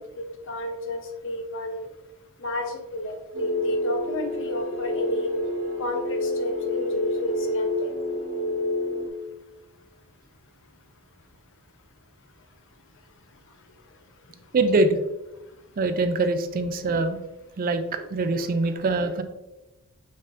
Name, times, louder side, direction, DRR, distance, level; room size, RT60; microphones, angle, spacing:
voice 1, 0.0-1.9 2.4-5.3 5.8-7.9, left 1 dB, 60° left, 5 dB, 0.7 m, -32 dB
sound 1, 3.3-9.1, left 1 dB, 80° right, 1.5 m, -28 dB
voice 2, 14.5-15.0 15.8-17.2 17.6-19.2, right 2 dB, 40° right, 9 dB, 0.4 m, -23 dB
5.3 x 3.9 x 2.5 m, 0.99 s
head